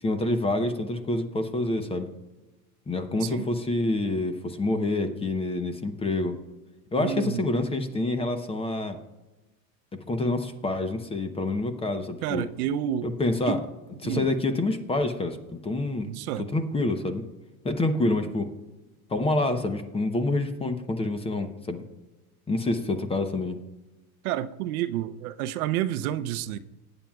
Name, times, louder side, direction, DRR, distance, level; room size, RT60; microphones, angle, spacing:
voice 1, 0.0-2.1 2.9-6.4 6.9-9.0 9.9-12.5 13.0-13.6 14.0-16.1 16.4-17.2 17.6-18.5 19.1-21.8 22.5-23.6, left 2 dB, 15° left, 0.7 m, -27 dB
voice 2, 7.0-7.4 12.2-13.1 13.5-13.6 14.0-14.3 16.0-16.5 24.2-26.6, right 11 dB, 80° right, 0.7 m, -29 dB
19.5 x 8.9 x 2.3 m
supercardioid pair, 130°, 43 cm